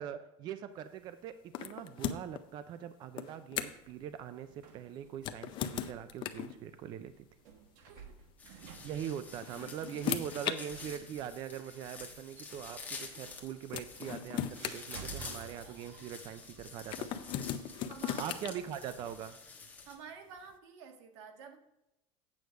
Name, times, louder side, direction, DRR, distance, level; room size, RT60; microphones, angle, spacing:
voice 1, 0.0-7.3 8.5-17.2 18.2-19.4, right 9 dB, 30° right, 11 dB, 0.4 m, -42 dB
sound 1, 1.5-2.4 3.2-3.9 5.1-6.5 7.8-8.0 9.2-10.6 11.6-11.7 13.3-13.4 13.7-15.6 16.9-18.5, left 10 dB, 35° left, 0.5 m, -37 dB
sound 2, 3.7-19.3, right 6 dB, 65° right, 1.3 m, -55 dB
voice 2, 7.8-8.2 10.9-11.1 17.5-18.4 19.8-21.6, right 6 dB, 80° right, 5 dB, 1.6 m, -51 dB
sound 3, 8.4-19.9, left 4 dB, 10° left, 1.2 m, -49 dB
8.4 x 6.6 x 4.6 m, 0.91 s
cardioid pair, 170°, 15 cm